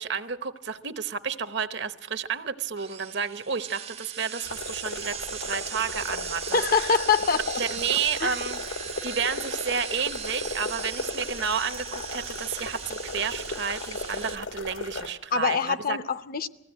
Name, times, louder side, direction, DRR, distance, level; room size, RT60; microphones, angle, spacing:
voice 1, 0.0-6.9 7.6-8.6 9.0-16.0, right 6 dB, 55° right, 11 dB, 0.9 m, -31 dB
sound 1, 2.8-14.4, right 8 dB, 30° right, 0.7 m, -38 dB
sound 2, 4.4-15.1, left 3 dB, 75° left, 1.5 m, -36 dB
voice 2, 6.5-7.6 8.2-8.4 15.3-16.5, left 5 dB, 45° left, 12 dB, 0.7 m, -24 dB
20.5 x 15.5 x 8.9 m, 0.85 s
head